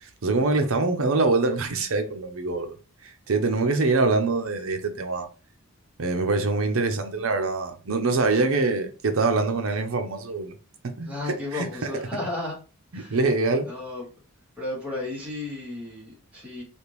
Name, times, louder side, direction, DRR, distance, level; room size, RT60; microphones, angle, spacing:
voice 1, 0.0-2.7 3.0-5.3 6.0-10.5 10.8-12.1 12.9-13.7, right 3 dB, 65° right, 0.6 m, -24 dB
voice 2, 11.0-12.6 12.9-13.2 13.7-14.0 14.6-16.6, left 2 dB, 5° right, 1.3 m, -33 dB
3.5 x 2.5 x 3.0 m
head